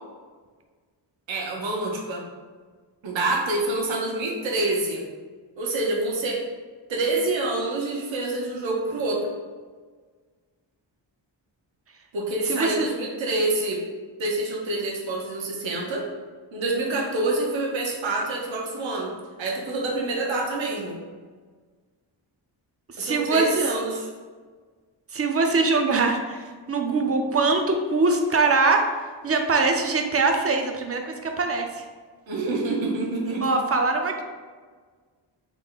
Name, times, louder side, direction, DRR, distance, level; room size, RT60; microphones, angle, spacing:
voice 1, 1.3-2.2 3.0-5.0 5.6-6.4 6.9-9.2 12.1-13.8 14.2-16.1 16.5-19.1 19.4-21.0 23.0-24.1 32.3-33.4, right 2 dB, 75° right, -2 dB, 0.9 m, -27 dB
voice 2, 12.5-12.9 22.9-23.5 25.1-28.9 29.2-31.8 33.4-34.2, right 3 dB, 30° right, 4 dB, 0.4 m, -23 dB
3.7 x 2.1 x 3.9 m, 1.5 s
cardioid pair, 85°, 47 cm